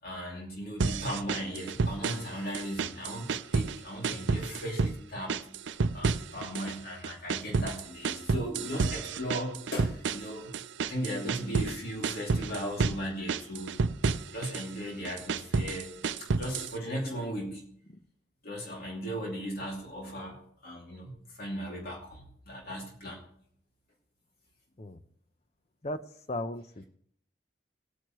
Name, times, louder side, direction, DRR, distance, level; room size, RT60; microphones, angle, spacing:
voice 1, 0.0-5.4 5.9-10.5 10.8-13.8 14.3-15.9 16.2-17.6 18.4-23.2, equal, 55° left, -1 dB, 2.6 m, -37 dB
sound 1, 0.8-2.3 2.5-3.8 4.0-5.0 5.3-6.8 7.0-11.8 12.0-13.0 13.3-14.7 15.0-16.7, right 4 dB, 75° right, 0.5 m, -30 dB
voice 2, 25.8-26.9, left 1 dB, 35° left, 11 dB, 0.7 m, -37 dB
18.5 x 9.3 x 3.1 m, 0.66 s
head